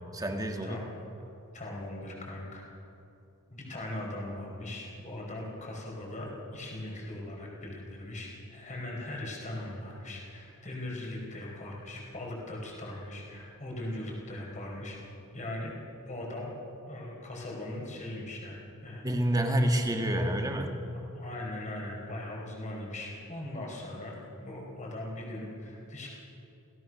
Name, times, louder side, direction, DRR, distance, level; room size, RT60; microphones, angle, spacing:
voice 1, 0.1-0.8 19.0-20.7, right 1 dB, 15° right, 3 dB, 1.8 m, -28 dB
voice 2, 1.5-2.6 3.5-15.0 15.3-15.7 16.1-16.5 16.9-19.1 21.1-26.1, left 1 dB, 35° left, -1 dB, 4.9 m, -39 dB
27.5 x 17.5 x 6.4 m, 2.9 s
head